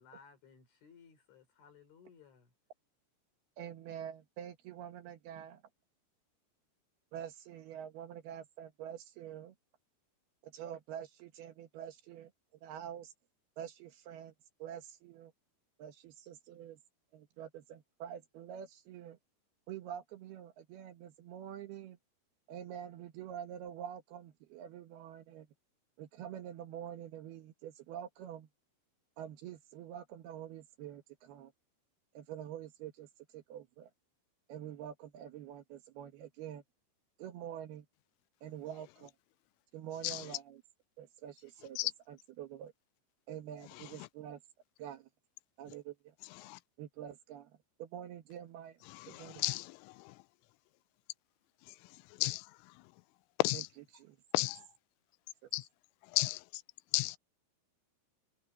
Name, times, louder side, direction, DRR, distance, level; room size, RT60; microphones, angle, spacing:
voice 1, 0.0-2.5, left 6 dB, 70° left, 7.7 m, -59 dB
voice 2, 3.6-5.6 7.1-9.5 10.4-12.3 12.6-13.1 13.6-14.3 14.6-15.3 15.8-16.8 17.1-19.2 19.7-22.0 22.5-25.5 26.0-28.5 29.2-31.5 32.1-33.9 34.5-36.6 37.2-37.9 38.4-39.1 39.7-40.6 41.0-41.8 42.1-42.7 43.3-44.4 44.8-45.1 45.6-46.1 46.8-48.8 49.1-49.4 53.5-53.6 53.9-54.2 55.4-55.5, right 10 dB, 70° right, 2.8 m, -46 dB
voice 3, 48.9-50.1 51.7-51.8 52.2-52.5 53.4-53.7 54.3-54.7 55.5-55.7 56.1-56.6 56.9-57.2, left 22 dB, 90° left, 3.1 m, -33 dB
omnidirectional pair, 5.6 m